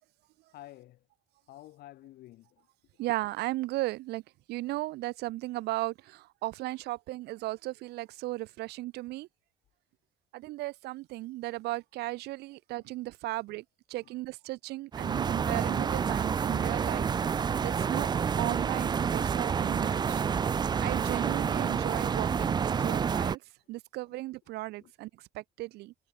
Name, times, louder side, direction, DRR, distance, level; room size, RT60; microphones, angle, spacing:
voice 1, 0.5-1.0 1.5-2.7 14.0-14.1 24.8-24.9, left 15 dB, 70° left, 0.9 m, -51 dB
voice 2, 3.0-4.2 4.5-9.3 10.3-17.1 17.6-18.1 18.4-20.2 20.8-23.4 23.7-25.1 25.3-25.9, right 18 dB, 75° right, 0.6 m, -36 dB
sound 1, 14.9-23.4, right 6 dB, 25° right, 0.4 m, -29 dB
cardioid pair, 110°, 17 cm